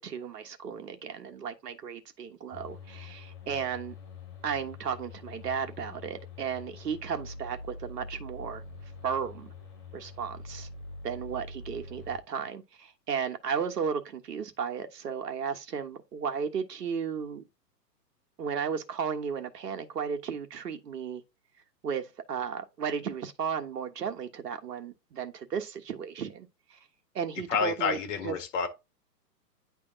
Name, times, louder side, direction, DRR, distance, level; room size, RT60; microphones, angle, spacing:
voice 1, 0.0-3.9 4.4-8.6 9.0-9.5 9.9-10.7 11.0-17.4 18.4-21.2 21.8-26.8 27.1-28.0 28.2-28.4, right 7 dB, 70° right, 1.4 m, -34 dB
sound 1, 2.5-12.2, left 3 dB, 25° left, 3.9 m, -45 dB
voice 2, 27.5-28.7, left 6 dB, 45° left, 1.9 m, -29 dB
9.9 x 3.4 x 3.7 m
hypercardioid pair, 130°, 50 cm